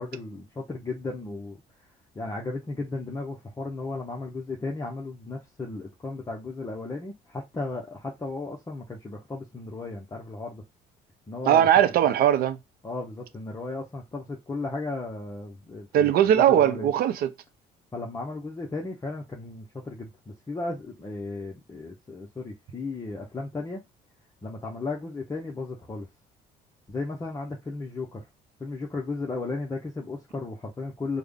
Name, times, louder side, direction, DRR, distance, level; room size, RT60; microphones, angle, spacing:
voice 1, 0.0-1.6 2.1-10.6 11.3-11.7 12.0-12.1 12.8-16.9 17.9-23.8 24.4-26.1 26.9-28.2 28.6-31.2, left 3 dB, 20° left, 0.7 m, -35 dB
voice 2, 11.5-12.6 15.9-17.3, right 10 dB, 65° right, 0.5 m, -20 dB
3.4 x 2.2 x 3.5 m
cardioid pair, 110°, 17 cm